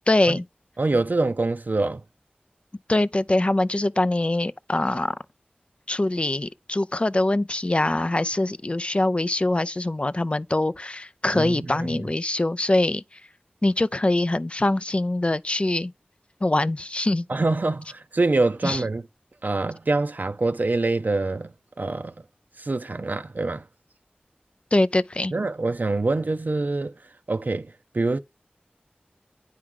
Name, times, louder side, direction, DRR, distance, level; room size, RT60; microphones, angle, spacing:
voice 1, 0.1-0.4 2.9-5.2 5.9-13.2 13.6-15.9 16.4-17.3 18.6-18.8 24.7-25.3, left 2 dB, 35° left, 0.4 m, -23 dB
voice 2, 0.8-2.0 11.3-12.0 17.3-19.0 19.4-22.1 22.6-23.6 25.3-27.0 27.3-28.2, right 2 dB, 60° right, 0.5 m, -25 dB
8.8 x 4.7 x 3.7 m
wide cardioid pair, 45°, 3 cm